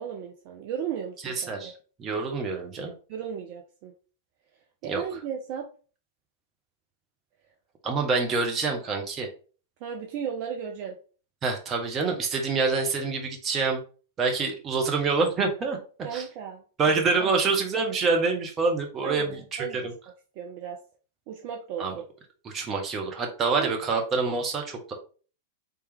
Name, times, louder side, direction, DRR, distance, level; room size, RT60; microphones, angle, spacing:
voice 1, 0.0-1.7 3.1-3.9 4.8-5.7 9.8-11.0 16.0-16.6 17.2-17.3 19.0-19.9 20.4-20.8 21.3-22.0 23.6-23.7, right 8 dB, 45° right, 2 dB, 0.5 m, -35 dB
voice 2, 1.2-1.7 2.0-2.9 4.9-5.0 7.8-9.3 11.4-13.8 14.2-15.8 16.1-16.2 16.8-19.9 21.8-21.9 22.4-24.9, right 4 dB, 25° right, 2 dB, 0.9 m, -26 dB
3.3 x 2.9 x 3.3 m, 0.39 s
figure-of-eight pair, 95°, 0 cm